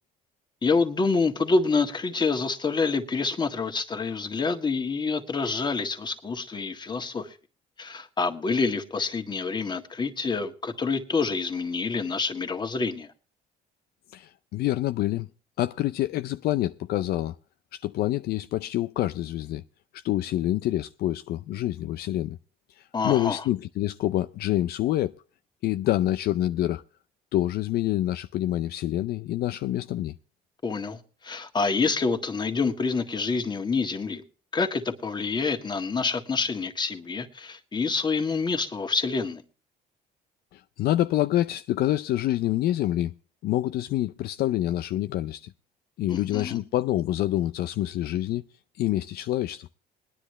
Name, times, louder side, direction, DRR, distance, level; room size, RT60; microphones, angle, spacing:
voice 1, 0.6-7.4 7.8-13.1 22.9-23.4 30.6-34.2 34.5-39.4 46.1-46.6, left 4 dB, 25° left, 1.7 m, -27 dB
voice 2, 14.1-15.3 15.6-17.4 17.7-19.6 19.9-22.4 22.7-25.2 25.6-26.8 27.3-30.2 40.5-43.1 43.4-45.5 46.0-48.4 48.8-49.7, left 14 dB, 70° left, 0.5 m, -27 dB
21.5 x 10.0 x 3.2 m
cardioid pair, 110°, 17 cm